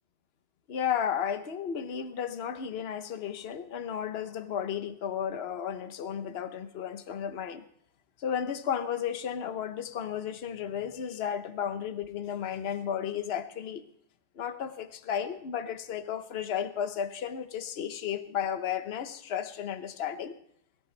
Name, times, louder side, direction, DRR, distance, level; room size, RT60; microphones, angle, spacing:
voice 1, 0.7-7.6 8.2-13.8 14.4-20.4, left 8 dB, 45° left, 0.9 m, -33 dB
21.5 x 13.5 x 3.4 m
omnidirectional pair, 1.9 m